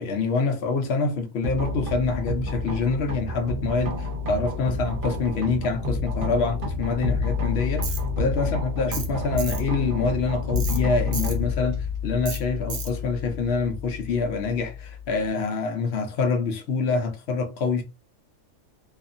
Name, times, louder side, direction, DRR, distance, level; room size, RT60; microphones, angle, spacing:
voice 1, 0.0-17.8, left 4 dB, 60° left, 0.7 m, -26 dB
sound 1, 1.4-15.3, left 3 dB, 40° right, 0.9 m, -29 dB
Tools, 7.8-8.0 8.9-9.1 9.4-9.6 10.6-10.8 11.1-11.4 12.3-12.4 12.7-12.9, right 5 dB, 60° right, 0.6 m, -33 dB
2.6 x 2.4 x 2.5 m
omnidirectional pair, 1.6 m